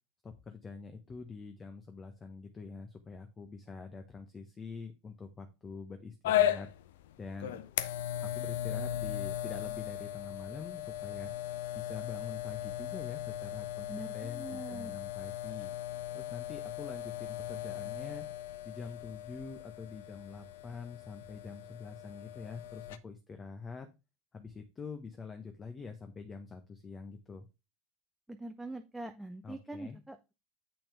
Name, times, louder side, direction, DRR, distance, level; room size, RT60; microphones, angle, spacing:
voice 1, 0.2-6.7 7.2-7.6 8.2-11.3 11.7-15.7 16.1-18.3 18.6-23.9 24.3-27.4 29.4-30.0, left 4 dB, 25° left, 7 dB, 1.2 m, -45 dB
sound 1, 6.2-23.0, left 12 dB, 65° left, 0.6 m, -37 dB
voice 2, 13.9-14.9 28.3-30.3, right 2 dB, 5° right, 6 dB, 0.8 m, -43 dB
8.6 x 5.9 x 3.5 m, 0.26 s
figure-of-eight pair, 80°, 0 cm